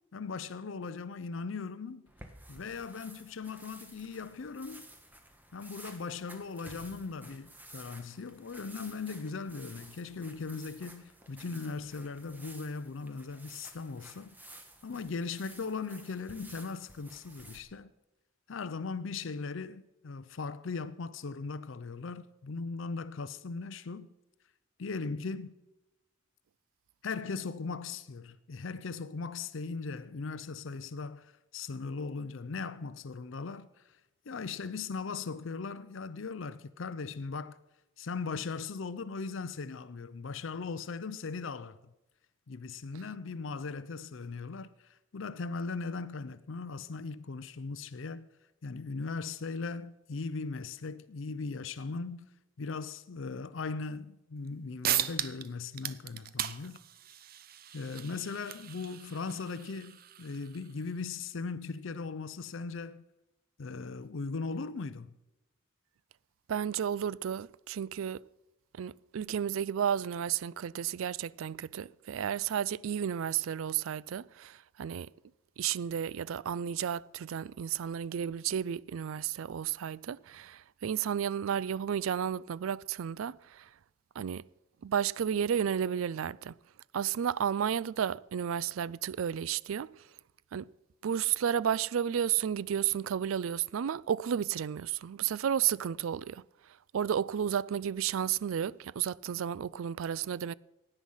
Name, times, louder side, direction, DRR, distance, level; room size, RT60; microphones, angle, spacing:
voice 1, 0.1-2.1 2.5-4.9 5.5-14.5 14.8-17.9 18.5-24.1 24.8-25.6 27.0-34.0 34.3-37.6 38.0-41.8 42.5-48.3 48.6-52.3 52.6-56.8 57.7-63.0 63.6-65.2, left 4 dB, 70° left, 0.5 m, -39 dB
sound 1, 2.1-17.6, right 1 dB, 10° right, 1.3 m, -53 dB
sound 2, 54.5-54.6 54.8-55.5 55.7-60.9, right 11 dB, 45° right, 0.7 m, -37 dB
voice 2, 66.5-68.2 68.8-75.1 75.6-83.7 84.2-84.4 84.8-86.5 86.9-89.9 90.5-90.7 91.0-96.4 96.9-100.5, right 8 dB, 80° right, 0.4 m, -32 dB
16.5 x 9.9 x 5.6 m
head